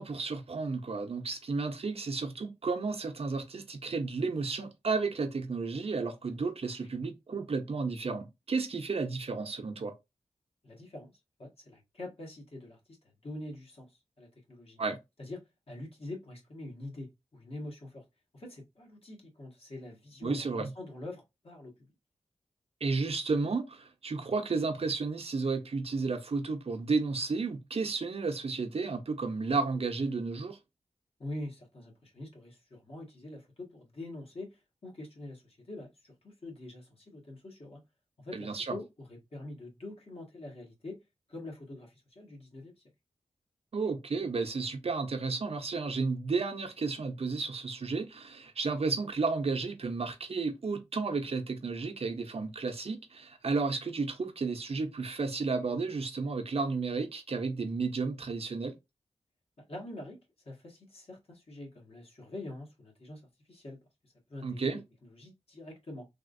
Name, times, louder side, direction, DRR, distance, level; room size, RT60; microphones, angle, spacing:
voice 1, 0.0-9.9 14.8-15.0 20.2-20.7 22.8-30.6 38.3-38.8 43.7-58.8 64.4-64.8, right 4 dB, 55° right, 0.7 m, -32 dB
voice 2, 10.6-11.1 11.4-14.8 15.2-15.4 15.7-18.0 18.3-21.9 31.2-37.8 38.2-41.0 41.3-42.7 59.7-60.2 60.4-63.2 63.5-66.1, left 1 dB, 55° left, 1.4 m, -45 dB
3.5 x 2.4 x 2.5 m
cardioid pair, 50°, 12 cm